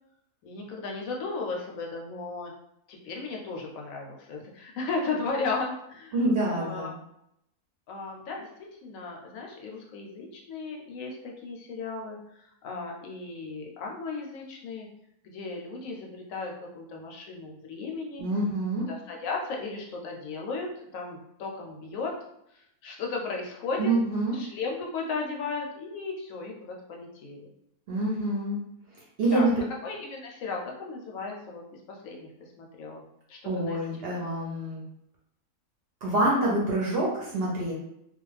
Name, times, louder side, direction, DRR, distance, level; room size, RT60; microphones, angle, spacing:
voice 1, 0.4-2.5 2.9-6.9 7.9-8.5 8.8-14.9 15.2-18.2 18.9-22.1 22.5-23.9 24.3-27.5 29.3-29.5 29.8-33.8, left 4 dB, 75° left, 0 dB, 0.9 m, -35 dB
voice 2, 6.1-6.9 18.2-18.9 23.8-24.4 27.9-28.6 29.2-29.5 33.4-34.8 36.0-37.7, right 1 dB, 60° right, -4 dB, 0.7 m, -26 dB
2.4 x 2.2 x 3.1 m, 0.79 s
omnidirectional pair, 1.5 m